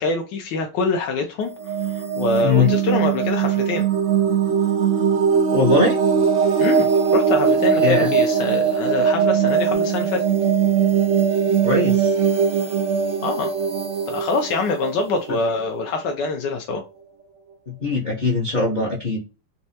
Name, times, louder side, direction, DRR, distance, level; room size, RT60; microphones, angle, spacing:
voice 1, 0.0-3.9 6.6-10.2 13.2-13.5 14.1-16.8, left 3 dB, 70° left, 1.1 m, -25 dB
sound 1, 1.4-16.1, right 7 dB, 65° right, 0.7 m, -20 dB
voice 2, 5.5-6.0 7.8-8.1 11.6-12.1 17.7-19.2, left 3 dB, 40° left, 0.7 m, -21 dB
4.2 x 2.3 x 2.7 m
omnidirectional pair, 2.4 m